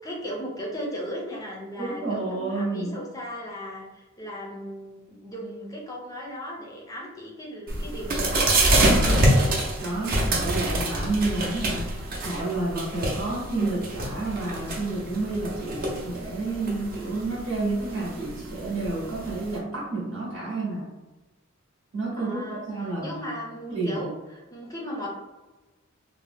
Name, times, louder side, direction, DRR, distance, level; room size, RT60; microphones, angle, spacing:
voice 1, 0.0-8.7 22.1-25.1, equal, 15° left, -2 dB, 0.5 m, -37 dB
voice 2, 1.8-3.0 9.8-20.9 21.9-23.3 23.7-24.1, right 2 dB, 75° right, -5 dB, 0.9 m, -30 dB
sound 1, 7.7-19.6, right 1 dB, 45° right, 0.6 m, -26 dB
2.7 x 2.0 x 3.3 m, 1.1 s
head